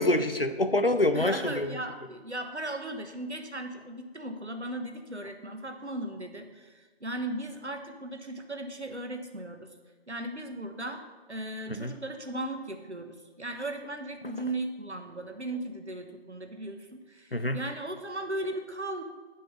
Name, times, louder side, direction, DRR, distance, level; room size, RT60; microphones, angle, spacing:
voice 1, 0.0-1.7 11.7-11.9 17.3-17.6, left 1 dB, 60° left, 9 dB, 0.7 m, -26 dB
voice 2, 1.1-9.7 10.1-11.0 11.3-19.0, right 1 dB, 85° right, 6 dB, 1.3 m, -37 dB
8.6 x 5.4 x 6.7 m, 1.3 s
figure-of-eight pair, 175°, 33 cm